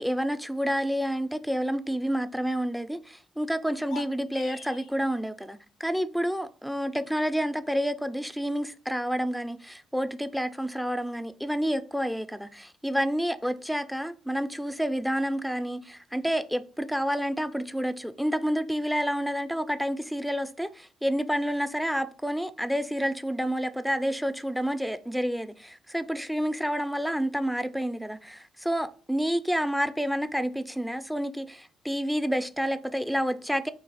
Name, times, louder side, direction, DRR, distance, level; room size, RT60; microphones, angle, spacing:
voice 1, 0.0-33.7, equal, ahead, 0.3 m, -29 dB
sound 1, 3.8-4.9, left 8 dB, 75° left, 0.5 m, -43 dB
3.3 x 2.7 x 3.9 m
cardioid pair, 90°, 0 cm